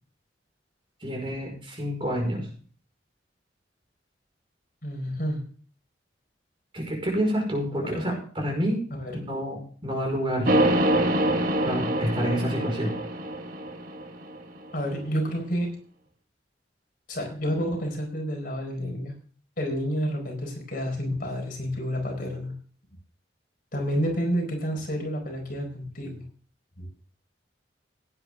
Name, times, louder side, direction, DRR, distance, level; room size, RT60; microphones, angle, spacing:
voice 1, 1.0-2.5 6.7-8.8 9.3-10.5 11.6-12.9, equal, 30° right, 0 dB, 5.2 m, -28 dB
voice 2, 4.8-5.5 7.8-7.9 8.9-9.2 14.7-15.7 17.1-19.1 19.6-22.5 23.7-26.2 26.8-26.9, equal, 50° left, 2 dB, 4.6 m, -29 dB
Dark horn, 10.5-14.6, right 1 dB, 50° right, 1.6 m, -25 dB
17.0 x 9.8 x 3.7 m, 0.43 s
head